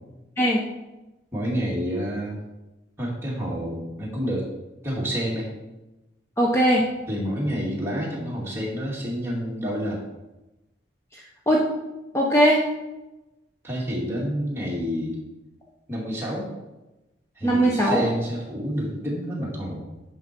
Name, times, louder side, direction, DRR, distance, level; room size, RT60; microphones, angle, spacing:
voice 1, 1.3-2.4 3.0-4.5 4.8-5.5 7.1-10.0 13.6-15.2 15.9-16.5 17.4-19.8, equal, 15° right, -5 dB, 2.2 m, -28 dB
voice 2, 6.4-6.8 11.1-11.6 12.1-12.6 17.4-18.0, right 1 dB, 15° left, -3 dB, 0.9 m, -20 dB
9.9 x 5.5 x 4.5 m, 1.0 s
head